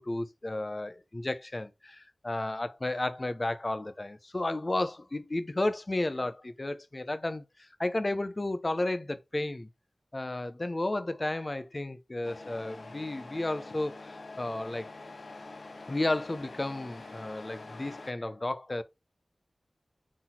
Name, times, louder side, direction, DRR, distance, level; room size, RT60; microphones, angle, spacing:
voice 1, 0.0-9.7 10.1-14.9 15.9-18.8, left 2 dB, 35° left, 0.7 m, -33 dB
Truck, 12.2-18.1, left 3 dB, 70° left, 0.9 m, -46 dB
6.1 x 4.1 x 4.3 m
wide cardioid pair, 65°, 0 cm